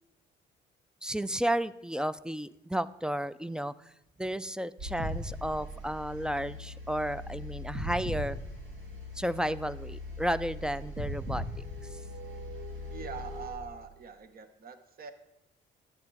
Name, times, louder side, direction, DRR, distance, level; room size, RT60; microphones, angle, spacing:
voice 1, 1.0-3.7 4.2-8.4 9.2-11.4, equal, 5° right, 16 dB, 0.3 m, -32 dB
sound 1, 4.8-13.5, left 1 dB, 75° right, 2.7 m, -39 dB
voice 2, 12.9-15.1, right 6 dB, 50° right, 10 dB, 0.9 m, -43 dB
10.5 x 7.7 x 4.6 m, 0.89 s
cardioid pair, 90°, 20 cm